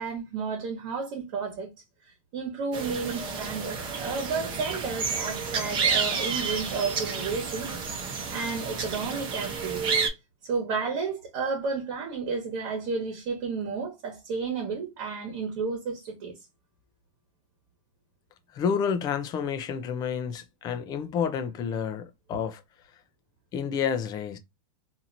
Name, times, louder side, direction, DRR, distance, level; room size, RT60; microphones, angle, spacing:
voice 1, 0.0-1.7 2.3-7.7 8.0-10.0 10.4-16.3, right 5 dB, 50° right, 1.2 m, -32 dB
sound 1, 2.7-10.1, right 5 dB, 25° right, 0.8 m, -30 dB
voice 2, 18.5-22.6 23.5-24.4, left 7 dB, 20° left, 0.4 m, -29 dB
2.8 x 2.6 x 2.5 m
supercardioid pair, 150°, 18 cm